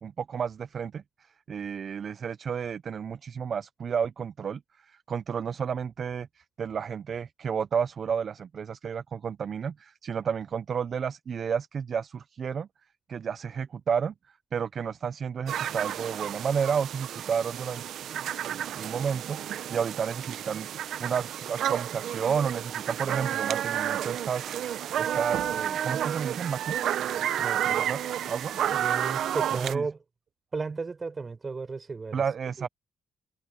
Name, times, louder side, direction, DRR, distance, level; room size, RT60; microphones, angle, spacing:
voice 1, 0.0-12.7 13.1-14.1 14.5-17.8 18.8-20.7 21.0-24.5 25.0-26.9 27.4-28.0 28.3-28.6 29.5-29.8 32.1-32.7, right 7 dB, 50° right, 0.6 m, -31 dB
sound 1, 15.5-29.7, right 10 dB, 70° right, 0.9 m, -31 dB
voice 2, 28.7-30.0 30.5-32.2 32.6-32.7, right 4 dB, 30° right, 5.5 m, -34 dB
cardioid pair, 90°, 0 cm